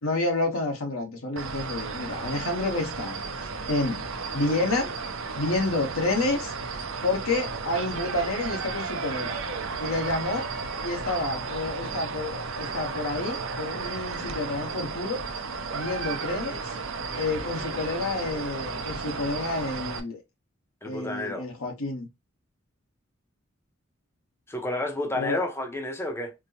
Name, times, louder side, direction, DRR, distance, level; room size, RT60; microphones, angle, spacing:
voice 1, 0.0-4.0 4.3-4.9 5.3-6.5 7.0-9.4 9.8-10.5 10.8-15.2 15.7-16.7 17.2-20.2 20.8-22.1 25.1-25.4, left 2 dB, 90° left, 1.1 m, -29 dB
sound 1, 1.4-20.0, right 4 dB, 70° right, 0.6 m, -33 dB
voice 2, 20.8-21.5 24.5-26.3, left 2 dB, 10° left, 0.6 m, -30 dB
4.4 x 2.0 x 2.8 m
head